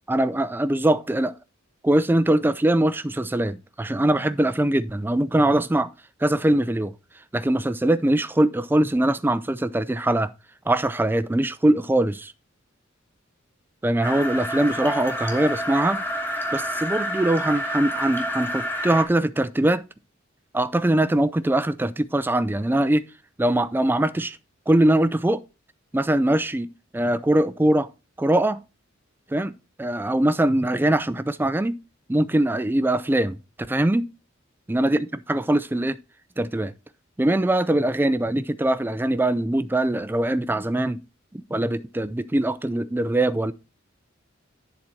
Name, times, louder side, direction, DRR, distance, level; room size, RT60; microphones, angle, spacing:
voice 1, 0.1-1.3 1.8-5.9 6.2-6.9 7.3-10.3 10.7-12.3 13.8-16.0 16.5-19.8 20.5-23.0 23.4-24.4 24.7-25.4 25.9-26.7 26.9-27.9 28.2-28.6 29.3-31.8 32.1-33.4 33.7-34.1 34.7-36.0 36.4-36.7 37.2-41.0 41.3-43.5, right 1 dB, 10° right, 0.4 m, -22 dB
sound 1, 14.0-19.0, equal, 10° left, 1.2 m, -28 dB
10.5 x 4.1 x 4.4 m
head